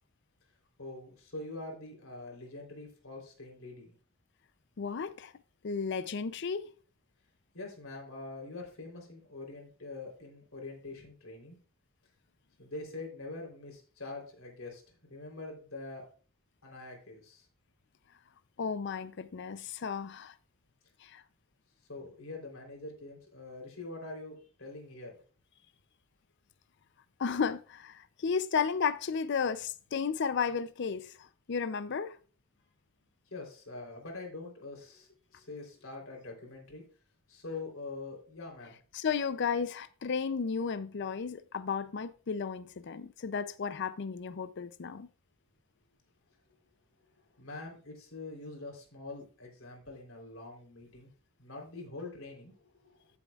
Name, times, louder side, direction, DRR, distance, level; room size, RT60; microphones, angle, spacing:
voice 1, 0.8-3.9 7.5-11.6 12.6-16.1 16.6-17.5 21.9-25.1 33.3-36.8 37.3-38.8 47.2-51.1 51.4-53.1, left 3 dB, 75° left, 3.5 m, -44 dB
voice 2, 4.8-5.3 5.6-6.7 18.6-20.3 21.0-21.2 27.2-32.2 38.9-45.1, left 6 dB, 55° left, 0.5 m, -33 dB
14.5 x 7.1 x 2.4 m
head